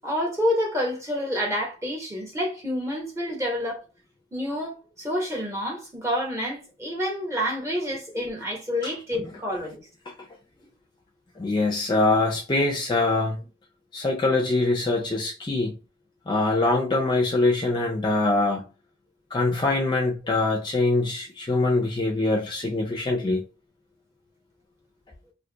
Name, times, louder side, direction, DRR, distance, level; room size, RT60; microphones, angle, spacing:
voice 1, 0.0-3.8 4.3-9.8, equal, 15° right, 0.8 m, -28 dB
voice 2, 11.4-13.4 13.9-15.8 16.3-18.6 19.3-23.4, left 2 dB, 25° left, 0.4 m, -23 dB
2.5 x 2.3 x 3.7 m
head